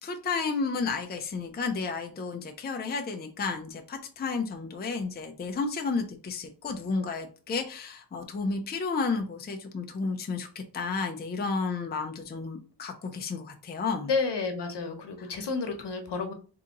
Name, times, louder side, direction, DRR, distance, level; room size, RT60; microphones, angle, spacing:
voice 1, 0.0-14.1 15.2-15.3, left 4 dB, 25° left, 4 dB, 0.4 m, -32 dB
voice 2, 14.0-16.3, left 4 dB, 75° left, 6 dB, 1.0 m, -30 dB
3.8 x 2.8 x 3.7 m, 0.38 s
wide cardioid pair, 170°, 42 cm